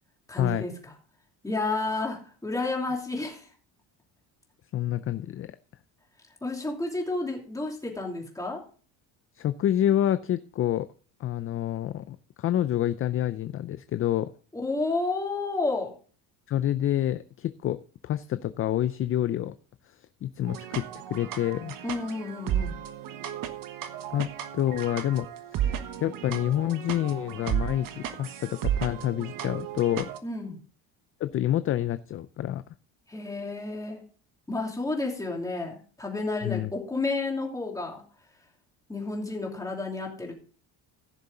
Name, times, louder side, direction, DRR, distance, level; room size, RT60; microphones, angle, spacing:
voice 1, 0.3-0.7 1.4-3.5 6.4-8.6 14.5-15.9 21.8-22.8 30.2-30.6 33.1-34.0 34.5-38.0 38.9-40.3, left 3 dB, 10° left, 0 dB, 2.8 m, -31 dB
voice 2, 4.7-5.5 9.3-10.9 11.2-14.3 16.5-17.8 18.0-19.5 19.9-21.7 24.1-25.3 25.5-25.6 26.0-30.1 31.2-32.6 36.4-36.7, left 12 dB, 35° left, 13 dB, 0.4 m, -28 dB
sound 1, 20.5-30.2, right 10 dB, 55° right, 1.3 m, -34 dB
15.5 x 6.8 x 3.9 m, 0.40 s
cardioid pair, 135°, 39 cm